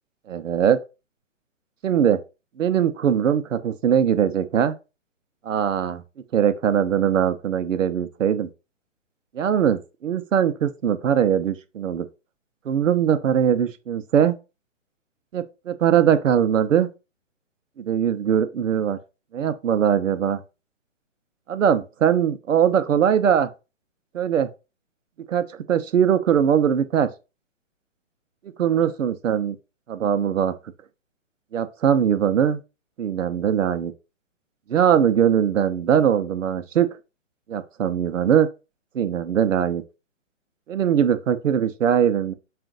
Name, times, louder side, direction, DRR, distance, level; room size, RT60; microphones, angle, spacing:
voice 1, 0.3-0.8 1.8-2.2 2.6-4.8 5.4-6.0 6.3-8.5 9.3-12.1 12.7-14.4 15.3-16.9 17.8-19.0 19.3-20.4 21.5-23.5 24.1-24.5 25.3-27.1 28.6-29.5 29.9-30.5 31.5-32.6 33.0-33.9 34.7-36.9 37.5-38.5 38.9-39.8 40.7-42.3, right 8 dB, 80° right, 0.7 m, -21 dB
3.8 x 2.5 x 3.7 m
hypercardioid pair, 140°, 38 cm